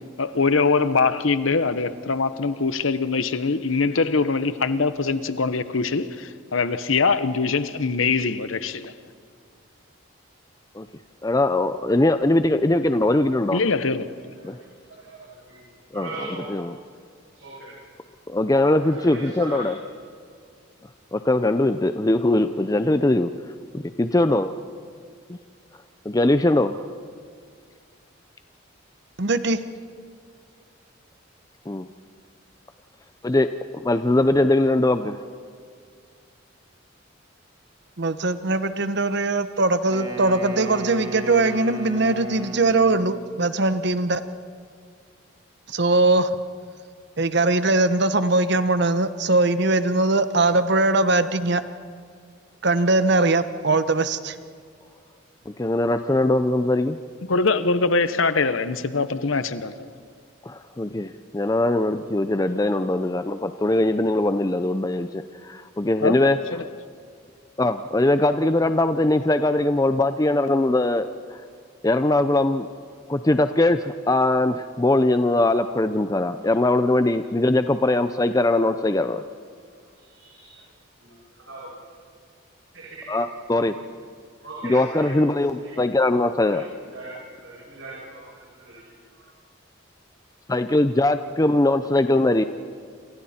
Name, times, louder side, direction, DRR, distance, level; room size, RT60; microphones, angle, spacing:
voice 1, 0.2-8.9 13.5-14.2 57.3-59.8 66.0-66.7, left 4 dB, 85° left, 1.0 m, -23 dB
voice 2, 11.2-13.6 14.4-14.6 16.0-16.1 16.5-16.7 18.3-19.7 21.1-23.3 23.7-24.5 25.3-25.4 26.1-26.8 31.7-31.9 33.2-33.5 33.8-35.2 55.6-57.0 60.5-66.4 67.6-71.1 71.8-72.7 73.1-79.2 83.1-83.7 84.6-86.6 90.5-92.4, left 2 dB, 20° left, 0.5 m, -21 dB
voice 3, 14.4-15.6 15.9-16.5 17.3-17.7 18.6-19.9 79.7-80.6 81.0-81.1 81.5-81.6 82.7-83.1 84.4-85.1 85.5-87.1 87.4-88.8 89.1-89.3, right 2 dB, 75° right, 7.1 m, -40 dB
voice 4, 29.2-29.6 38.0-44.2 45.7-46.4 47.2-51.6 52.6-54.4, right 2 dB, 55° right, 1.0 m, -21 dB
Wind instrument woodwind instrument, 39.9-43.4, right 2 dB, 20° right, 2.2 m, -35 dB
28.5 x 28.0 x 4.4 m
head